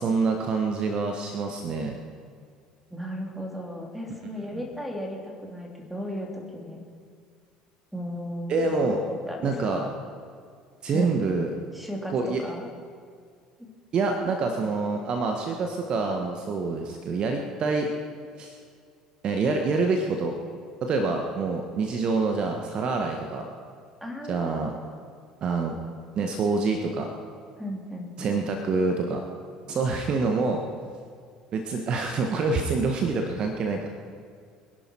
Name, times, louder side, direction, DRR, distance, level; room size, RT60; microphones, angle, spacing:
voice 1, 0.0-2.0 8.5-9.0 9.4-9.8 10.8-11.5 12.1-12.4 13.9-17.9 18.4-18.6 19.2-20.3 20.8-23.5 24.3-24.7 25.4-25.7 26.1-27.1 28.2-29.3 29.7-30.6 31.5-33.9, right 4 dB, 40° right, 3 dB, 1.3 m, -26 dB
voice 2, 2.9-6.8 7.9-8.7 9.3-9.9 10.9-11.1 11.7-12.7 24.0-24.6 27.6-28.4, equal, 5° right, 0 dB, 3.4 m, -35 dB
23.5 x 11.0 x 4.6 m, 2.1 s
figure-of-eight pair, 60°, 2 cm